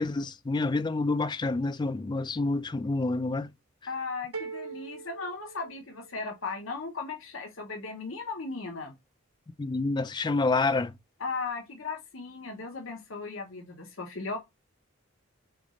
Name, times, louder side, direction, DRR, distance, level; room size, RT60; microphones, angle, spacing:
voice 1, 0.0-3.5 9.6-10.9, left 3 dB, 20° left, 0.3 m, -28 dB
voice 2, 3.9-8.9 11.2-14.4, left 4 dB, 65° left, 1.0 m, -37 dB
sound 1, 4.3-6.3, right 5 dB, 85° right, 0.9 m, -41 dB
4.0 x 3.4 x 3.7 m
head